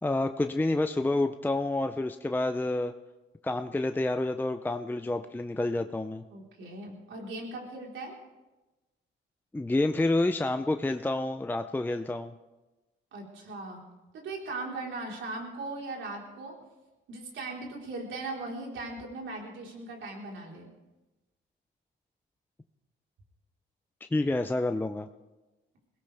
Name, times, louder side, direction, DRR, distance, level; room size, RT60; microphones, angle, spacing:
voice 1, 0.0-2.9 3.4-6.2 9.5-12.3 24.0-25.1, left 2 dB, 10° left, 8 dB, 0.5 m, -28 dB
voice 2, 6.3-8.2 13.1-13.9 14.1-16.5 17.1-20.7, right 2 dB, 75° right, -1 dB, 4.1 m, -39 dB
22.0 x 17.0 x 3.4 m, 1.1 s
cardioid pair, 90°, 20 cm